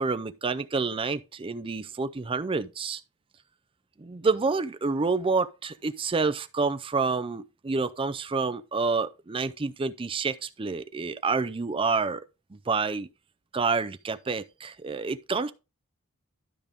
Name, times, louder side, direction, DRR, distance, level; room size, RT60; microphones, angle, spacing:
voice 1, 0.0-3.0 4.0-12.2 12.5-13.1 13.5-15.5, right 4 dB, 25° right, 0.4 m, -28 dB
12.0 x 5.2 x 3.5 m
head